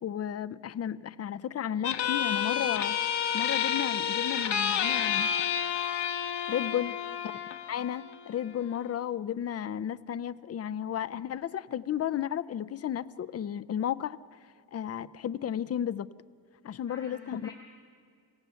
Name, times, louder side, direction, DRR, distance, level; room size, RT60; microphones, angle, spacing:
voice 1, 0.0-3.0 3.3-5.3 6.5-6.9 7.7-14.4 14.7-16.1 16.6-17.5, left 10 dB, 35° left, 15 dB, 0.5 m, -33 dB
sound 1, 1.8-8.9, left 8 dB, 75° left, 1.4 m, -30 dB
voice 2, 6.6-7.0 16.9-17.5, left 2 dB, 10° left, -5 dB, 7.6 m, -49 dB
27.5 x 15.5 x 6.9 m, 2.3 s
wide cardioid pair, 160°, 42 cm